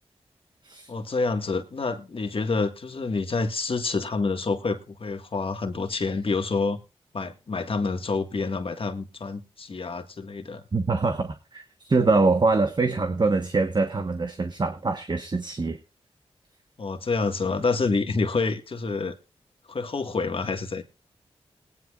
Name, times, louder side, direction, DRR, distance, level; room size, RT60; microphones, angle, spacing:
voice 1, 0.9-6.8 7.1-10.6 16.8-19.2 19.7-20.8, left 4 dB, 55° left, 6 dB, 1.8 m, -28 dB
voice 2, 10.7-15.8, right 3 dB, 40° right, 7 dB, 1.3 m, -24 dB
20.0 x 10.0 x 2.5 m, 0.28 s
cardioid pair, 55°, 11 cm